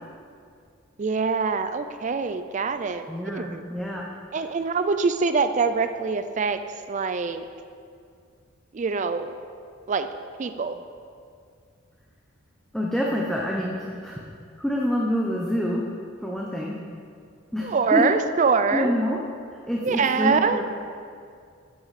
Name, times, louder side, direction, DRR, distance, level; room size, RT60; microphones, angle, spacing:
voice 1, 1.0-3.1 3.3-3.6 4.3-6.6 6.9-7.4 8.7-9.3 9.9-10.1 10.4-10.8 17.6-18.9 19.8-20.6, right 5 dB, 35° right, 10 dB, 0.4 m, -24 dB
voice 2, 3.1-4.0 12.7-14.3 14.6-15.8 16.2-16.8 17.5-18.0 18.7-19.2 19.7-20.6, equal, ahead, -3 dB, 0.7 m, -27 dB
12.0 x 8.6 x 4.1 m, 2.3 s
head